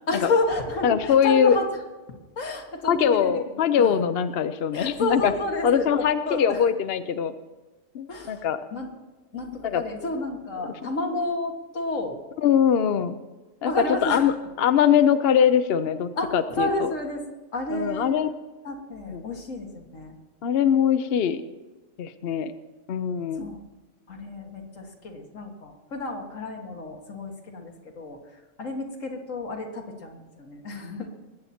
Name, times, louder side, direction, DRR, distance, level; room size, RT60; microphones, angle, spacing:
voice 1, 0.1-1.7 2.4-3.4 3.8-4.0 4.7-6.7 8.1-8.4 8.7-8.9 9.3-12.2 13.6-14.3 16.2-17.2 17.5-18.3 18.6-20.2 23.3-23.6 24.1-28.2 28.6-31.1, left 2 dB, 75° left, 2 dB, 2.0 m, -30 dB
voice 2, 0.8-1.6 2.8-5.3 5.6-7.3 7.9-8.6 9.6-9.8 12.4-13.1 13.6-13.7 14.0-14.3 14.6-16.9 17.7-18.3 19.1-19.2 20.4-21.4 22.0-22.5 22.9-23.5, left 8 dB, 60° left, 10 dB, 0.8 m, -22 dB
20.5 x 8.4 x 4.3 m, 1.2 s
omnidirectional pair, 1.3 m